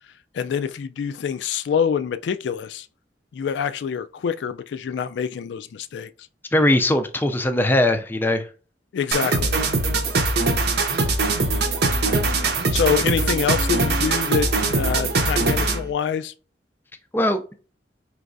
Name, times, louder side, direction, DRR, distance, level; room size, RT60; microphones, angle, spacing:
voice 1, 0.3-2.9 3.3-6.1 8.9-9.6 12.7-16.3, left 7 dB, 80° left, 0.3 m, -25 dB
voice 2, 6.5-8.5 17.1-17.4, left 1 dB, 10° left, 0.4 m, -20 dB
sound 1, 9.1-15.9, right 3 dB, 70° right, 0.7 m, -22 dB
4.6 x 3.1 x 2.5 m
head